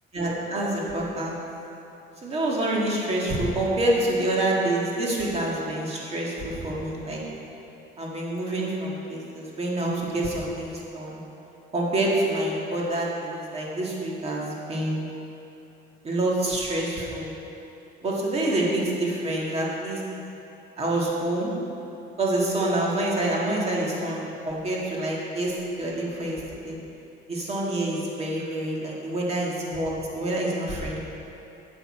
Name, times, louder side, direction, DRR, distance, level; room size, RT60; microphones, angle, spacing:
voice 1, 0.1-1.4 2.2-7.2 8.0-11.2 11.7-15.1 16.0-17.3 18.0-20.0 20.8-21.5 22.2-26.8 27.3-31.0, right 1 dB, 30° right, -4 dB, 1.7 m, -27 dB
10.5 x 6.9 x 4.3 m, 2.9 s
cardioid pair, 140°, 21 cm